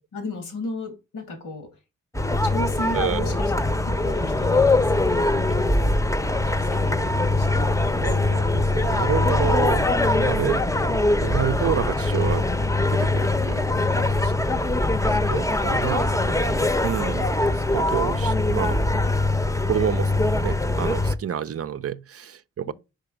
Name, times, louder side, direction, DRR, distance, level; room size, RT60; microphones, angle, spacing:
voice 1, 0.0-1.8 2.4-6.0 6.4-8.4 15.3-15.5 15.8-16.6 22.7-22.8, left 2 dB, 85° left, 2.1 m, -36 dB
sound 1, 2.1-21.2, left 2 dB, 10° left, 0.8 m, -22 dB
voice 2, 2.9-3.3 8.0-10.7 11.2-12.5 12.9-13.6 14.0-14.9 15.3-16.0 16.8-17.3 17.7-18.8 19.6-20.1 20.4-22.7, right 9 dB, 50° right, 0.5 m, -29 dB
5.2 x 5.0 x 4.9 m
supercardioid pair, 40°, 31 cm